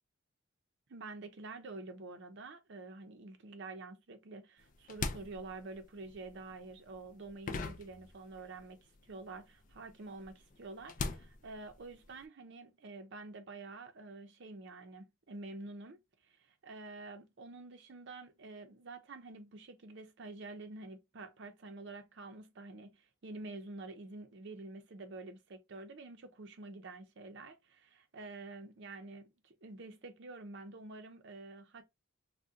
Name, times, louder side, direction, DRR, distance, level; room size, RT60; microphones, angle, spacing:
voice 1, 0.9-8.8 9.0-16.0 16.3-16.4 16.6-31.8, right 3 dB, 60° right, 0.6 m, -48 dB
sound 1, 4.6-8.7 8.9-12.2, left 4 dB, 40° left, 0.4 m, -42 dB
2.6 x 2.1 x 3.5 m
head